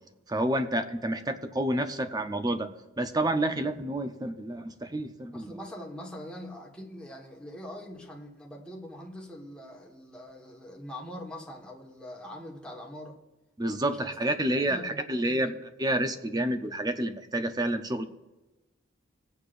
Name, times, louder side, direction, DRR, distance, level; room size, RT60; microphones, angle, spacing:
voice 1, 0.3-2.7 3.0-5.5 13.6-18.0, right 1 dB, 20° right, 8 dB, 0.7 m, -29 dB
voice 2, 5.3-13.2 13.7-14.4 14.7-15.5, left 1 dB, 5° left, -2 dB, 1.5 m, -43 dB
21.0 x 8.3 x 2.6 m, 1.1 s
head